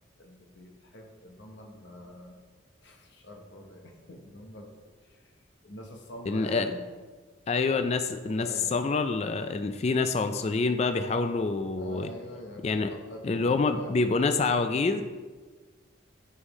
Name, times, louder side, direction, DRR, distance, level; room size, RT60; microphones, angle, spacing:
voice 1, 0.2-2.4 2.8-4.7 5.0-6.8 8.4-8.8 11.8-13.9, equal, 60° left, 2 dB, 0.9 m, -45 dB
voice 2, 6.3-6.7 7.5-12.1 12.6-12.9 13.2-15.0, left 4 dB, 30° left, 8 dB, 0.3 m, -27 dB
9.6 x 5.6 x 3.1 m, 1.4 s
head